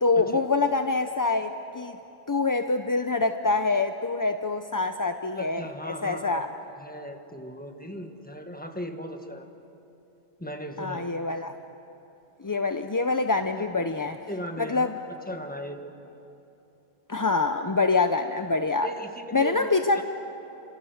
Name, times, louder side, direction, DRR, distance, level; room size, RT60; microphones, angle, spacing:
voice 1, 0.0-2.0 2.3-6.5 10.8-11.5 12.4-14.2 14.6-14.9 17.1-18.9 19.3-20.0, left 3 dB, 25° left, 7 dB, 0.5 m, -25 dB
voice 2, 5.3-6.4 6.8-9.5 10.4-11.1 13.6-13.7 14.3-14.9 15.3-15.8 18.8-20.0, equal, 10° left, 5 dB, 1.6 m, -37 dB
29.5 x 27.0 x 6.5 m, 3.0 s
omnidirectional pair, 1.2 m